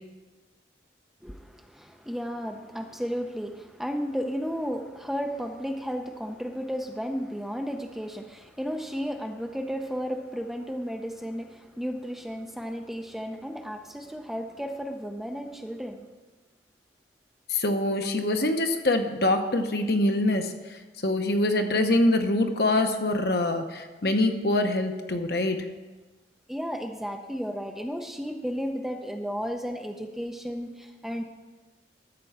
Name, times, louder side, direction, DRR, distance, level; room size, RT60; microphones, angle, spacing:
voice 1, 1.2-16.0 26.5-31.2, equal, ahead, 4 dB, 0.5 m, -33 dB
voice 2, 17.5-20.5 21.0-25.6, left 2 dB, 60° left, 6 dB, 0.9 m, -24 dB
13.0 x 4.5 x 7.2 m, 1.2 s
head